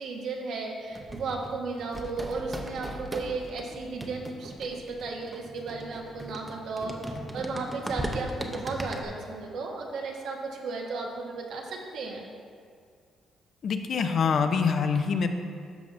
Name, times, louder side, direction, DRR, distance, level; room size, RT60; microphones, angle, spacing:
voice 1, 0.0-12.3, right 3 dB, 75° right, 0 dB, 1.1 m, -34 dB
sound 1, 0.9-9.0, right 1 dB, 20° right, 0.7 m, -38 dB
voice 2, 13.6-15.3, left 5 dB, 55° left, 7 dB, 0.5 m, -25 dB
13.0 x 5.3 x 2.6 m, 2.2 s
cardioid pair, 90°, 0 cm